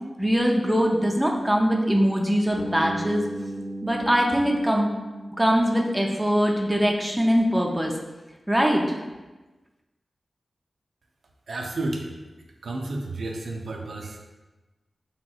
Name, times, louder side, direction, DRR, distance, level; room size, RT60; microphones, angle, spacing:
voice 1, 0.2-3.3 3.8-4.9 5.4-7.9 8.5-8.8, equal, 10° right, 0 dB, 0.4 m, -22 dB
Bass guitar, 2.6-6.5, right 1 dB, 45° left, 0.5 m, -36 dB
voice 2, 11.5-12.2 12.6-14.2, right 2 dB, 80° right, 1 dB, 0.3 m, -31 dB
3.4 x 2.7 x 2.3 m, 1.2 s
wide cardioid pair, 100°, 0 cm